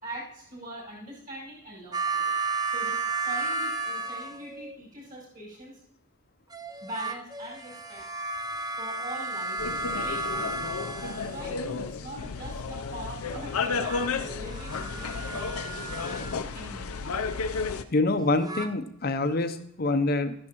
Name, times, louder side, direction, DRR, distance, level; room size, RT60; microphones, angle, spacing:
voice 1, 0.0-5.8 6.8-8.1 8.8-9.6 9.9-16.3 16.5-17.2, right 1 dB, 40° right, -4 dB, 5.1 m, -43 dB
sound 1, 1.9-4.8 6.5-11.7 13.6-16.4 18.2-18.7, right 3 dB, 15° right, 0.4 m, -33 dB
sound 2, 9.6-17.8, left 4 dB, 90° left, 0.6 m, -32 dB
voice 2, 17.9-20.3, left 2 dB, 45° left, 9 dB, 0.6 m, -26 dB
12.5 x 10.5 x 3.0 m, 0.74 s
head